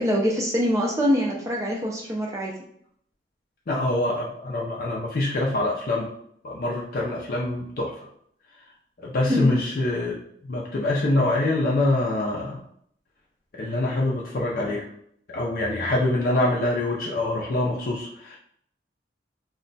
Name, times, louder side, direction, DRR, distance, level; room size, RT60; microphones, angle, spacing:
voice 1, 0.0-2.5 9.3-9.6, equal, 20° right, -1 dB, 0.4 m, -24 dB
voice 2, 3.7-6.1 6.4-8.1 9.0-10.2 10.4-12.6 13.6-14.9 15.3-18.4, left 2 dB, 55° left, -3 dB, 0.4 m, -25 dB
2.2 x 2.1 x 3.8 m, 0.66 s
head